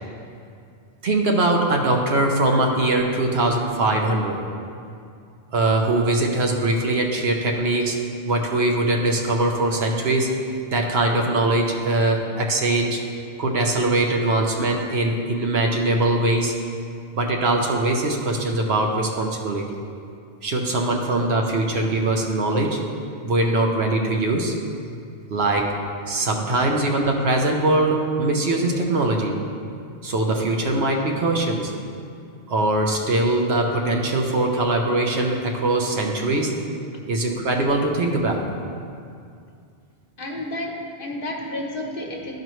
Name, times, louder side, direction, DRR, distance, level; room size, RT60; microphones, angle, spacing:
voice 1, 1.0-4.4 5.5-8.0 8.3-10.3 10.7-13.0 13.4-16.5 17.2-19.7 20.4-22.8 23.2-24.5 25.3-25.8 26.1-29.4 30.0-31.7 32.5-36.5 37.1-38.4, right 2 dB, 75° right, 1 dB, 1.1 m, -22 dB
voice 2, 40.2-42.4, left 1 dB, 60° left, 0 dB, 1.1 m, -31 dB
12.0 x 4.8 x 3.1 m, 2.4 s
omnidirectional pair, 1.1 m